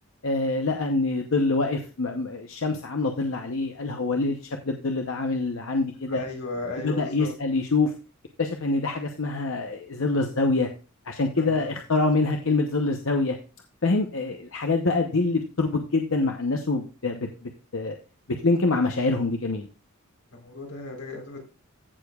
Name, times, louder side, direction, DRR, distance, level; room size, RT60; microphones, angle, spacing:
voice 1, 0.2-4.4 4.6-6.2 6.8-7.9 8.4-10.7 11.1-13.4 13.8-17.9 18.4-19.7, left 3 dB, 65° left, 4 dB, 0.8 m, -25 dB
voice 2, 6.1-7.3 11.4-11.8 20.3-21.4, left 2 dB, 90° left, 0 dB, 3.8 m, -36 dB
15.0 x 6.7 x 2.4 m, 0.34 s
head